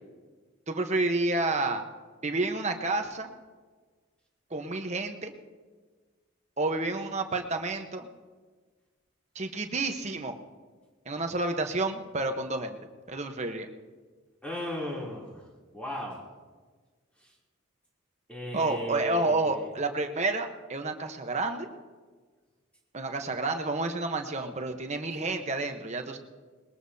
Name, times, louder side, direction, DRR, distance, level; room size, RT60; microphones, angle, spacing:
voice 1, 0.7-1.8 2.2-3.3 4.5-5.3 6.6-8.1 9.3-10.4 11.1-12.8 13.1-13.7 18.5-21.7 22.9-26.2, right 2 dB, 30° right, 5 dB, 1.0 m, -30 dB
voice 2, 14.4-15.4 15.7-16.2 18.3-19.7, left 1 dB, 5° left, -4 dB, 3.1 m, -36 dB
21.0 x 20.5 x 2.8 m, 1.4 s
head